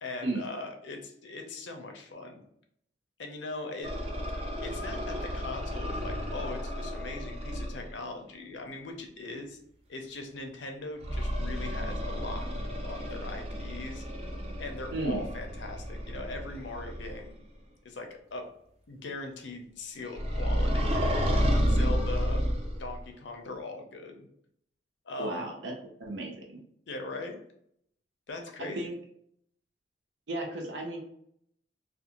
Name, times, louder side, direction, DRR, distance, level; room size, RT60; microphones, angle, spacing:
voice 1, 0.0-2.4 3.2-3.9 4.4-9.6 9.9-12.5 12.8-14.0 14.6-17.4 17.8-18.5 18.9-21.0 21.6-22.5 22.8-24.3 25.1-25.4 26.9-27.4 28.3-28.9, left 2 dB, 80° left, 4 dB, 0.5 m, -40 dB
sound 1, 3.8-7.9 11.0-17.3 20.1-23.0, equal, 35° right, 0.4 m, -31 dB
voice 2, 14.9-15.2 25.2-25.7 26.0-26.6 28.6-28.9 30.3-31.0, right 2 dB, 90° right, 1 dB, 0.7 m, -34 dB
2.5 x 2.3 x 2.9 m, 0.70 s
head